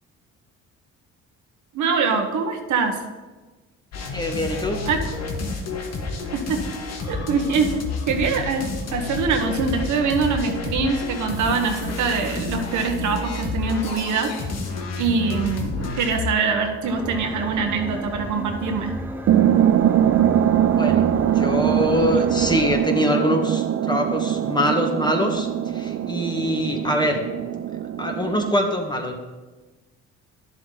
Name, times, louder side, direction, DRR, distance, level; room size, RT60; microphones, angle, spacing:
voice 1, 1.7-3.0 4.9-5.0 6.3-6.6 7.1-7.8 8.1-14.3 15.0-18.9, right 5 dB, 70° right, 4 dB, 1.3 m, -23 dB
sound 1, 3.9-16.3, left 3 dB, 55° left, 1.6 m, -30 dB
voice 2, 4.1-4.8 20.8-21.1 21.3-27.2 28.0-29.2, left 1 dB, 15° left, 3 dB, 1.6 m, -24 dB
sound 2, 16.8-22.8, equal, 5° right, 0.9 m, -33 dB
sound 3, 19.3-28.5, right 10 dB, 50° right, 0.6 m, -22 dB
10.5 x 7.5 x 3.9 m, 1.3 s
supercardioid pair, 75°, 31 cm